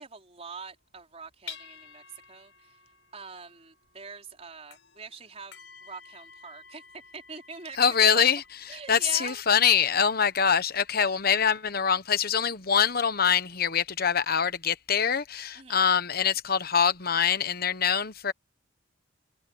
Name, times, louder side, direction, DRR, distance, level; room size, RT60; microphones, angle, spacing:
voice 1, 0.0-2.8 3.1-7.8 8.1-8.2 8.7-9.4 15.5-15.8, right 5 dB, 30° right, 4.8 m, -44 dB
sound 1, 0.7-11.0, left 6 dB, 65° left, 5.7 m, -51 dB
voice 2, 7.8-8.4 8.9-18.3, left 7 dB, 50° left, 1.1 m, -24 dB
head